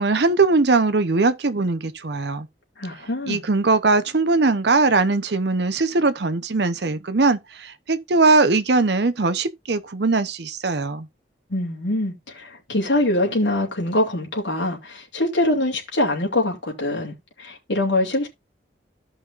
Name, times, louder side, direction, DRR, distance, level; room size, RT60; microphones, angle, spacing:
voice 1, 0.0-2.5 3.3-11.1, right 3 dB, 60° right, 0.8 m, -20 dB
voice 2, 2.8-3.4 11.5-18.3, left 1 dB, 80° left, 2.7 m, -24 dB
15.0 x 5.5 x 2.5 m
head